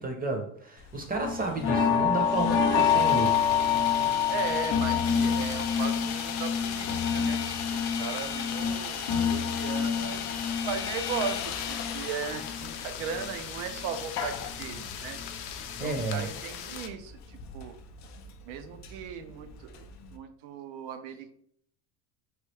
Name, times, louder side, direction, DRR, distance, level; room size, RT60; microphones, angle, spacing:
voice 1, 0.0-3.4 15.8-16.3, right 2 dB, 20° right, 3 dB, 0.7 m, -32 dB
Sawing, 0.8-20.2, left 7 dB, 40° left, 0.4 m, -39 dB
sound 1, 1.2-13.3 13.7-15.3 15.7-16.0 16.3-16.4, left 7 dB, 55° left, 0.8 m, -28 dB
voice 2, 4.3-15.2 15.8-17.8 18.5-21.3, right 6 dB, 70° right, 9 dB, 0.6 m, -37 dB
sound 2, 5.0-16.9, left 9 dB, 85° left, 0.6 m, -40 dB
3.2 x 2.2 x 3.2 m, 0.66 s
supercardioid pair, 95°, 47 cm